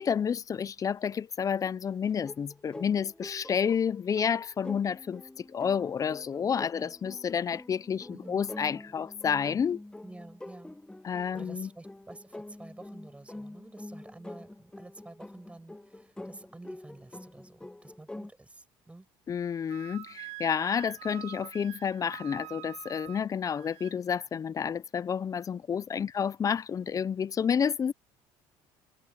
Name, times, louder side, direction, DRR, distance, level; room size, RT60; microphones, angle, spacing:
voice 1, 0.0-9.8 11.0-11.7 19.3-27.9, left 7 dB, 30° left, 0.6 m, -30 dB
sound 1, 2.2-18.3, left 1 dB, 10° left, 1.0 m, -46 dB
voice 2, 8.1-8.5 10.0-10.8 11.0-19.1 25.9-26.0, right 2 dB, 10° right, 7.1 m, -49 dB
Wind instrument woodwind instrument, 19.7-24.0, right 24 dB, 75° right, 0.4 m, -46 dB
cardioid pair, 100°, 11 cm